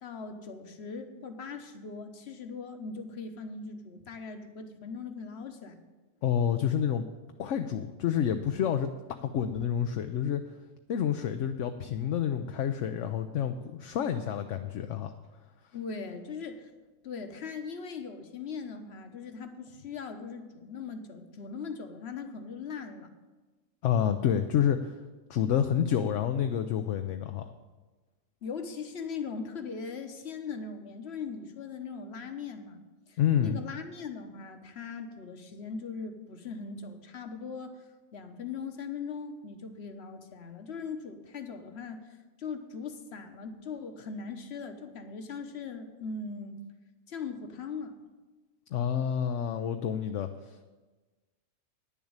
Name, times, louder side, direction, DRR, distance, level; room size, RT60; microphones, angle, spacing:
voice 1, 0.0-5.8 15.7-16.7 17.0-23.1 28.4-32.8 33.1-37.9 38.1-46.6 47.1-48.0, left 5 dB, 55° left, 7 dB, 1.3 m, -40 dB
voice 2, 6.2-7.1 7.4-8.9 9.2-10.4 10.9-15.1 23.8-25.0 25.3-27.5 33.2-33.6 48.7-50.6, left 9 dB, 70° left, 7 dB, 0.9 m, -28 dB
10.0 x 7.2 x 8.7 m, 1.3 s
omnidirectional pair, 1.4 m